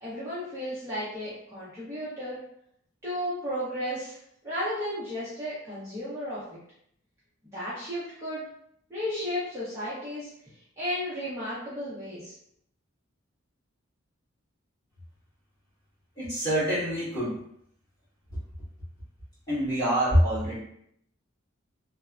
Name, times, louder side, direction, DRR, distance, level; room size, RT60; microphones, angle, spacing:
voice 1, 0.0-2.4 3.0-4.1 4.4-6.4 7.5-8.4 8.9-10.3 10.8-12.3, equal, 15° right, -11 dB, 0.7 m, -33 dB
voice 2, 16.2-17.4 19.5-20.6, equal, 20° left, -11 dB, 1.4 m, -25 dB
3.2 x 2.1 x 2.4 m, 0.71 s
head